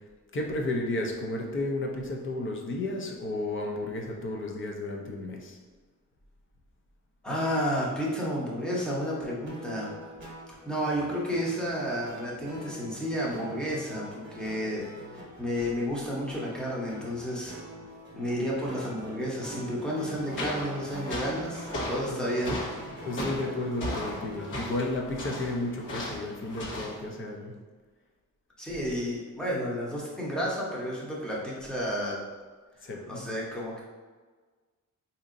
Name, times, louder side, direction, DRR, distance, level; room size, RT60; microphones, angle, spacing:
voice 1, 0.3-5.6 22.0-22.2 22.9-27.5 28.7-28.8 32.8-33.3, left 2 dB, 40° left, 1 dB, 0.6 m, -33 dB
voice 2, 7.2-9.9 10.6-17.5 18.1-22.5 28.6-32.2 32.8-33.8, equal, ahead, -5 dB, 0.8 m, -31 dB
sound 1, 9.5-24.7, right 1 dB, 35° right, 1.0 m, -45 dB
sound 2, 20.1-27.0, left 1 dB, 70° left, 1.2 m, -37 dB
4.0 x 2.8 x 2.5 m, 1.4 s
wide cardioid pair, 130°, 32 cm